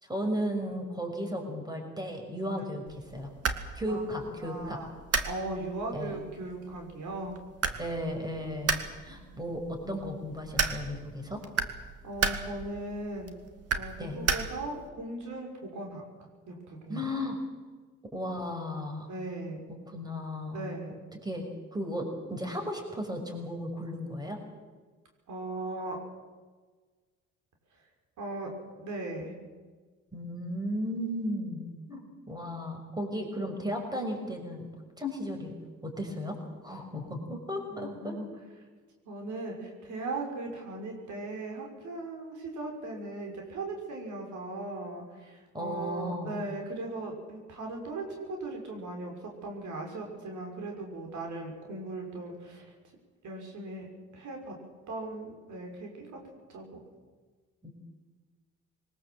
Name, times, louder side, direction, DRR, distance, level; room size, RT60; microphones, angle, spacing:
voice 1, 0.0-3.3 3.8-4.8 5.9-6.1 7.8-8.8 9.0-11.4 14.0-14.2 16.9-17.4 18.1-19.1 19.9-20.6 21.2-21.5 21.7-24.4 30.1-34.7 35.0-35.5 35.8-38.1 45.5-46.4 57.6-57.7, equal, 15° right, 3 dB, 6.0 m, -35 dB
sound 1, 2.9-14.9, right 5 dB, 55° right, 2.2 m, -35 dB
voice 2, 4.4-4.9 5.2-7.4 9.1-9.2 12.0-13.3 13.7-16.0 16.5-17.1 19.1-19.6 20.5-21.0 25.3-26.0 28.2-28.5 28.8-29.4 37.7-38.3 39.0-52.7 53.2-53.9 54.1-54.6 54.9-56.8, right 2 dB, 75° right, 2 dB, 6.0 m, -38 dB
22.5 x 19.5 x 7.9 m, 1.4 s
cardioid pair, 90°, 30 cm